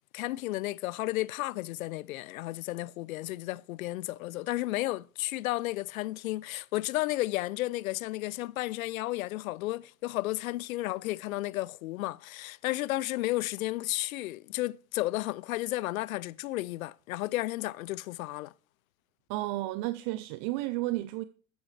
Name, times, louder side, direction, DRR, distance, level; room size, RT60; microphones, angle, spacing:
voice 1, 0.1-18.5, left 17 dB, 70° left, 0.5 m, -33 dB
voice 2, 19.3-21.2, right 17 dB, 35° right, 0.4 m, -32 dB
11.5 x 8.5 x 3.2 m
hypercardioid pair, 100°, 44 cm